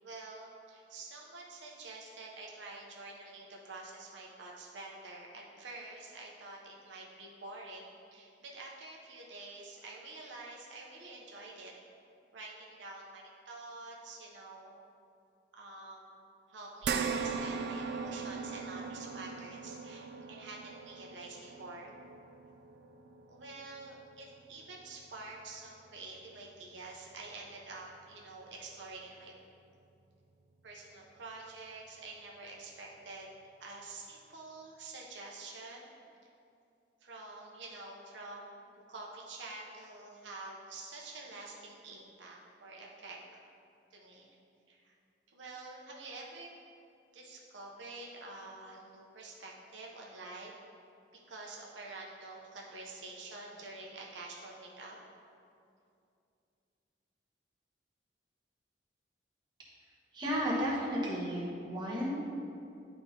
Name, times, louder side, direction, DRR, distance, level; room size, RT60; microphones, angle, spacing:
voice 1, 0.0-11.7 12.3-14.7 15.5-21.9 23.3-29.3 30.6-33.3 33.6-35.9 37.0-43.4 43.9-44.3 44.7-44.9 45.3-46.6 47.1-50.5 51.1-55.0, right 3 dB, 80° right, -2 dB, 0.8 m, -48 dB
sound 1, 16.8-25.4 25.9-26.0 27.4-27.5, right 5 dB, 60° right, 0.3 m, -40 dB
voice 2, 60.1-62.2, equal, 25° right, -7 dB, 1.4 m, -33 dB
11.0 x 4.2 x 2.9 m, 2.5 s
head